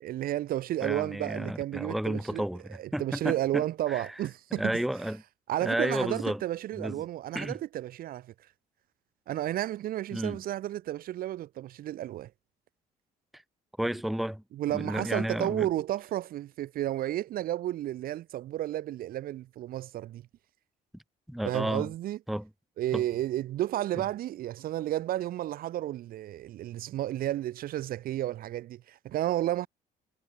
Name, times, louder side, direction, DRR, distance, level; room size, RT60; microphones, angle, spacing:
voice 1, 0.0-2.4 2.7-4.8 5.5-8.3 9.3-12.3 14.5-20.3 21.4-22.2 22.8-29.7, right 13 dB, 60° right, 0.6 m, -32 dB
voice 2, 0.8-2.6 2.9-3.6 3.9-4.1 4.6-5.2 5.6-6.4 6.8-7.0 7.3-7.6 10.1-10.4 13.3-13.4 13.8-14.4 14.7-15.7 21.3-21.9 22.3-22.5 22.9-23.0, right 1 dB, ahead, 0.7 m, -31 dB
cardioid pair, 110°, 17 cm